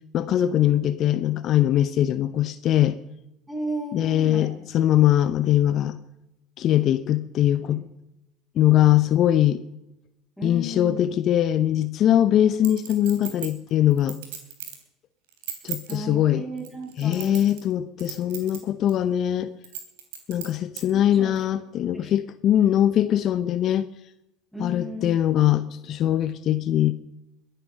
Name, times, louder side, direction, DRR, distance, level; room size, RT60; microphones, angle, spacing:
voice 1, 0.1-3.0 3.9-6.0 6.6-7.8 8.6-9.6 10.4-14.2 15.6-16.4 17.0-19.5 20.3-23.9 24.6-26.9, left 11 dB, 50° left, 13 dB, 0.7 m, -21 dB
voice 2, 3.5-4.5 7.6-7.8 10.4-11.2 15.9-17.4 20.9-21.5 21.9-22.2 24.5-25.2, right 1 dB, 5° right, -2 dB, 7.9 m, -35 dB
Chink clink, 12.6-14.8 15.3-15.9 16.6-17.7 18.0-18.6 18.9-19.0 19.6-20.8 21.4-21.5, right 9 dB, 80° right, 3.3 m, -36 dB
22.0 x 9.2 x 6.4 m, 0.89 s
hypercardioid pair, 80°, 0 cm